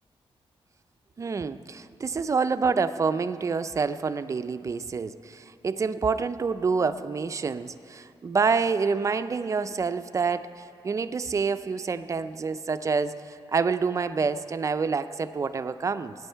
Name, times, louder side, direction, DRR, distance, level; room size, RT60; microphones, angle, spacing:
voice 1, 1.2-10.5 10.8-16.1, right 5 dB, 30° right, 12 dB, 0.3 m, -27 dB
20.5 x 9.0 x 4.5 m, 2.7 s
wide cardioid pair, 170°, 10 cm